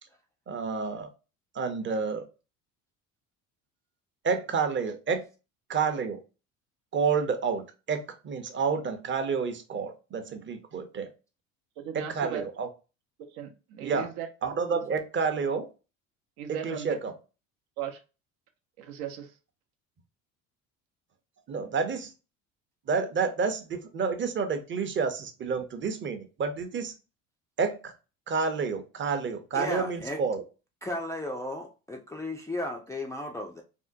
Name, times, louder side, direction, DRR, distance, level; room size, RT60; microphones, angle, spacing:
voice 1, 0.5-1.1 1.5-2.2 4.2-5.2 5.7-6.2 6.9-11.1 11.9-12.7 13.8-14.1 14.4-15.7 16.6-17.1 21.5-22.1 22.9-26.9 27.6-27.9 28.3-30.4, right 5 dB, 30° right, 0.7 m, -29 dB
voice 2, 11.8-12.4 13.3-14.3 14.7-14.8 16.4-16.9 17.8-18.0 18.8-19.4, right 9 dB, 70° right, 0.8 m, -37 dB
voice 3, 29.5-30.2 30.8-33.6, left 1 dB, 10° left, 0.3 m, -34 dB
3.5 x 2.1 x 2.5 m
supercardioid pair, 75°, 39 cm